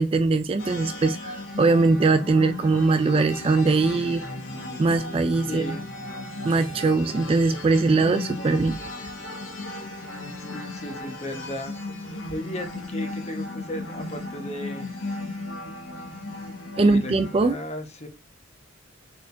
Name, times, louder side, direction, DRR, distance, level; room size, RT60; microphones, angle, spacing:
voice 1, 0.0-4.2 4.8-5.8 6.4-8.8 16.8-17.6, right 3 dB, 30° right, 0.3 m, -21 dB
sound 1, 0.6-17.4, left 2 dB, 80° left, 1.1 m, -36 dB
voice 2, 5.5-5.8 10.5-11.8 12.3-14.9 16.8-17.1 17.4-18.1, left 1 dB, 35° left, 0.9 m, -35 dB
4.3 x 3.6 x 2.7 m
head